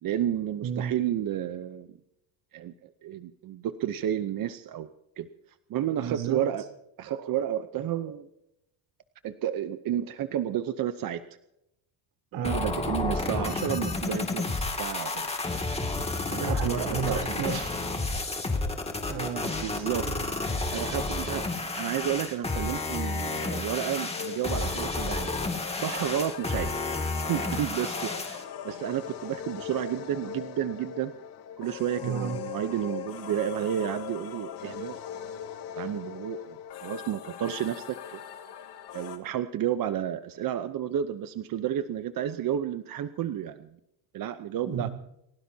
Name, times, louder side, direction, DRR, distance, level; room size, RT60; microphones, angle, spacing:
voice 1, 0.0-2.0 2.5-2.7 3.0-4.9 5.2-5.3 5.7-6.6 7.0-8.3 9.2-11.2 12.4-15.3 16.3-17.4 19.6-20.1 20.7-25.3 25.7-26.7 27.3-31.1 31.6-35.0 35.7-38.2 38.9-43.7 44.1-44.9, right 10 dB, 45° right, 10 dB, 0.8 m, -31 dB
voice 2, 0.6-0.9 6.0-6.4 12.3-12.6 16.4-17.8 19.1-20.1 32.0-32.4 44.6-44.9, right 7 dB, 65° right, 4 dB, 3.4 m, -32 dB
sound 1, 12.4-28.4, left 3 dB, 10° left, 2.3 m, -31 dB
sound 2, 24.1-39.2, left 9 dB, 55° left, 3.0 m, -40 dB
29.5 x 17.0 x 2.8 m, 0.86 s
cardioid pair, 155°, 48 cm